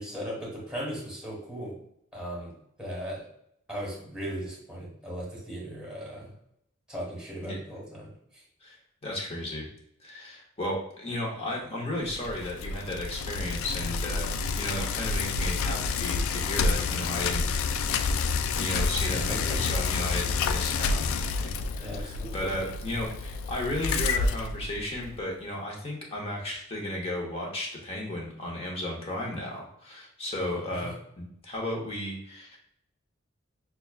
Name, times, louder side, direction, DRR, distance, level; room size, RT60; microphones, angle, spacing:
voice 1, 0.0-1.8 2.1-3.2 3.7-6.3 6.9-8.4 19.1-19.7 21.8-22.6, equal, 5° right, -4 dB, 1.4 m, -37 dB
voice 2, 9.0-9.7 10.0-18.0 18.6-21.4 21.7-32.6, left 1 dB, 30° left, -1 dB, 0.9 m, -34 dB
Bicycle, 12.0-25.2, left 4 dB, 80° left, 0.3 m, -29 dB
5.8 x 2.2 x 2.4 m, 0.74 s
head